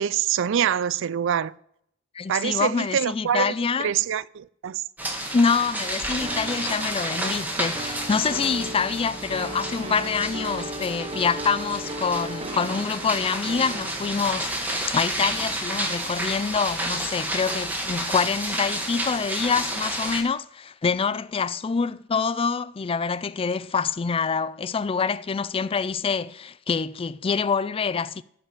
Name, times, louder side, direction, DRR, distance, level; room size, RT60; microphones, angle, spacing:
voice 1, 0.0-1.5 2.3-3.5 3.8-4.8, right 9 dB, 65° right, 0.4 m, -25 dB
voice 2, 2.1-3.9 5.3-28.2, left 5 dB, 25° left, 0.4 m, -26 dB
sound 1, 5.0-20.2, right 1 dB, 10° right, 1.9 m, -30 dB
sound 2, 6.2-14.5, right 2 dB, 25° right, 0.8 m, -37 dB
15.0 x 5.6 x 6.8 m
head